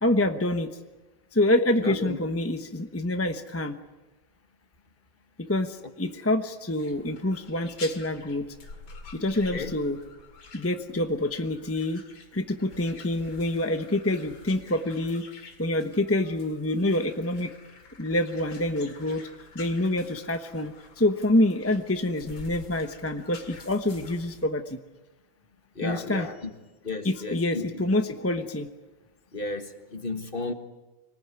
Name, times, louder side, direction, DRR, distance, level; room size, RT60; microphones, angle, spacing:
voice 1, 0.0-0.7 1.3-3.8 5.4-8.5 9.1-10.0 10.5-12.0 12.3-15.3 15.6-17.5 18.0-19.2 19.5-24.8 25.8-26.3 27.0-28.7, left 1 dB, 10° left, 0.7 m, -26 dB
voice 2, 1.8-2.2 6.0-6.1 9.5-9.7 25.8-26.5 26.8-27.6 29.3-30.5, left 3 dB, 30° left, 1.7 m, -33 dB
sound 1, 6.8-24.5, left 4 dB, 80° left, 3.1 m, -48 dB
26.5 x 19.5 x 9.7 m
omnidirectional pair, 2.1 m